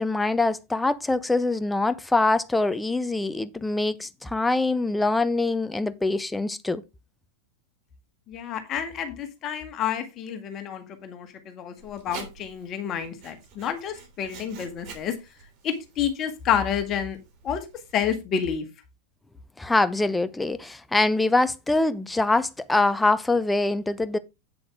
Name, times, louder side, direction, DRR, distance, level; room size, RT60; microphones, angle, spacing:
voice 1, 0.0-6.8 19.6-24.2, left 2 dB, 5° left, 0.7 m, -24 dB
voice 2, 8.3-15.1 15.6-17.2 17.4-17.6 17.9-18.7, left 8 dB, 30° left, 1.9 m, -29 dB
Writing, 11.8-18.1, right 6 dB, 40° right, 3.0 m, -47 dB
8.5 x 7.7 x 3.5 m
figure-of-eight pair, 90°, 0 cm